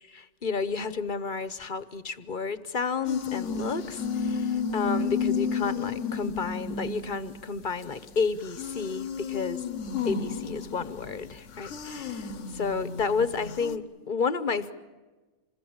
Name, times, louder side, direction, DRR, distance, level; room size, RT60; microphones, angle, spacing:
voice 1, 0.2-9.6 10.0-14.7, left 5 dB, 45° left, 13 dB, 1.1 m, -31 dB
sound 1, 3.1-8.2 8.5-13.8, left 5 dB, 90° left, 1.4 m, -32 dB
27.0 x 20.5 x 8.7 m, 1.2 s
omnidirectional pair, 1.2 m